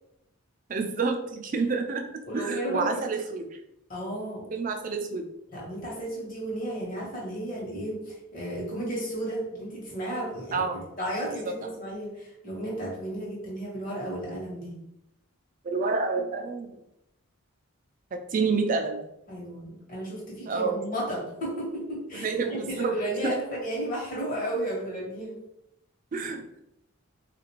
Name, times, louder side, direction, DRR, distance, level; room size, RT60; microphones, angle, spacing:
voice 1, 0.7-2.1 2.3-3.5 4.5-5.3 10.5-10.9 11.4-11.5 15.6-16.8 18.1-19.0 20.5-20.8 22.1-22.9 23.2-23.3 26.1-26.6, right 4 dB, 35° right, 5 dB, 0.3 m, -28 dB
voice 2, 2.3-3.0 3.9-4.4 5.5-14.8 19.3-25.3, right 1 dB, 40° left, -5 dB, 1.1 m, -33 dB
3.6 x 2.5 x 2.9 m, 0.83 s
head